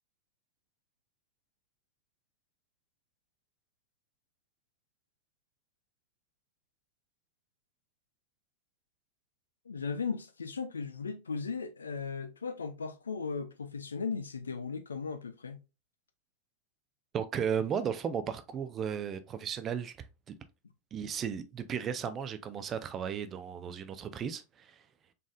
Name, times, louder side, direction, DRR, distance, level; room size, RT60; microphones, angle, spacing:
voice 1, 9.7-15.6, left 5 dB, 75° left, 0.4 m, -37 dB
voice 2, 17.1-20.1 20.9-24.8, right 7 dB, 25° right, 0.5 m, -35 dB
4.1 x 3.6 x 2.4 m
figure-of-eight pair, 90°, 0 cm